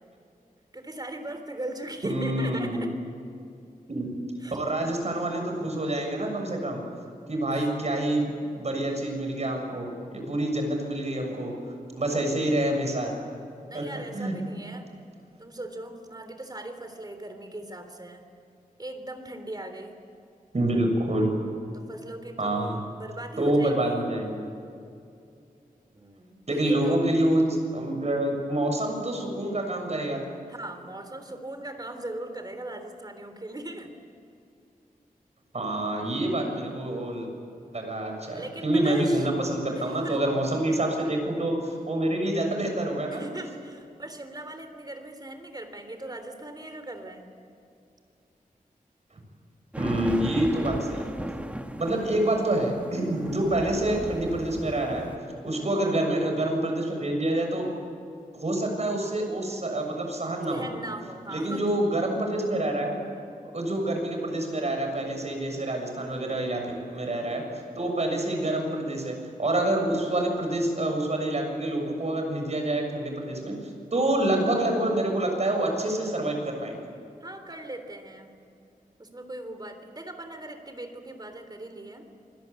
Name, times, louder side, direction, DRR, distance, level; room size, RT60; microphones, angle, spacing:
voice 1, 0.7-2.9 4.4-4.6 7.5-7.8 13.7-14.9 15.4-18.3 18.8-20.0 21.7-24.0 25.9-27.2 30.5-33.9 38.3-39.3 39.8-40.2 43.1-47.3 53.1-53.4 55.5-55.8 60.5-61.7 77.2-78.3 79.0-82.1, right 1 dB, 25° right, 7 dB, 3.5 m, -39 dB
voice 2, 2.0-2.8 3.9-4.1 4.5-6.8 7.3-11.5 12.0-13.2 13.7-13.8 14.1-14.4 20.5-21.3 22.4-22.8 23.4-24.4 26.5-27.4 27.7-30.2 35.5-37.3 37.7-43.3 49.8-51.1 51.8-55.1 55.4-57.7 58.3-60.7 61.3-63.0 63.5-66.6 66.9-67.4 67.8-73.6 73.9-76.9, right 1 dB, 50° right, 3 dB, 7.0 m, -27 dB
sound 1, 49.7-55.2, right 1 dB, 10° right, 1.6 m, -36 dB
27.5 x 21.0 x 8.5 m, 2.5 s
wide cardioid pair, 95°, 15 cm